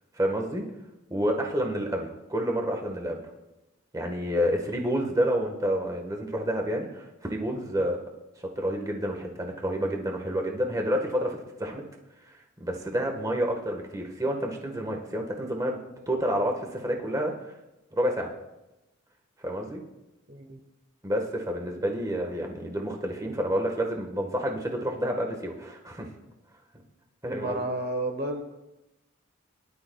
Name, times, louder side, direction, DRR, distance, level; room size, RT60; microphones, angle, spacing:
voice 1, 0.2-0.6 1.1-3.2 3.9-8.0 8.4-11.8 12.2-15.8 16.1-17.3 17.9-18.3 19.4-19.8 21.0-26.1 27.2-27.6, equal, 15° right, 2 dB, 1.4 m, -29 dB
voice 2, 20.3-20.6 27.2-28.4, right 1 dB, 45° right, 4 dB, 1.3 m, -31 dB
23.0 x 12.0 x 2.3 m, 0.97 s
head